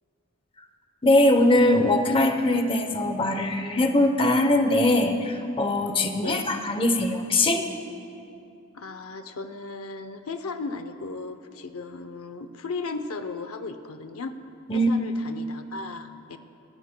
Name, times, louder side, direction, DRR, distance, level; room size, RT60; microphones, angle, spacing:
voice 1, 1.0-7.7 14.7-14.9, left 1 dB, 25° left, 6 dB, 0.8 m, -21 dB
voice 2, 8.7-14.3 14.7-16.4, left 3 dB, 70° left, 9 dB, 0.6 m, -36 dB
29.5 x 14.0 x 2.2 m, 2.6 s
head